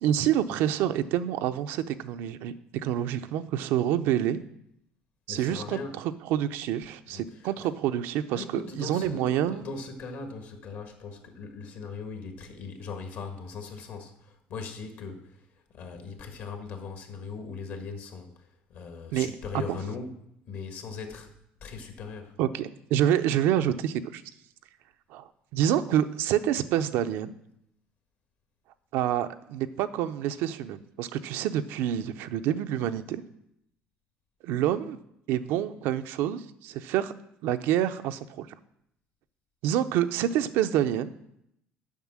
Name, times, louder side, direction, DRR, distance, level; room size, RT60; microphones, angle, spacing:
voice 1, 0.0-2.5 2.8-4.4 5.3-9.6 19.1-19.3 19.7-19.8 22.4-24.2 25.1-27.3 28.9-33.2 34.4-35.0 35.3-37.1 37.4-38.5 39.6-41.1, right 11 dB, 80° right, 10 dB, 0.5 m, -27 dB
voice 2, 5.3-6.0 7.1-7.5 8.3-15.5 15.7-21.3 21.6-22.3, left 4 dB, 65° left, 5 dB, 1.6 m, -39 dB
7.3 x 5.5 x 7.3 m, 0.77 s
cardioid pair, 115°, 4 cm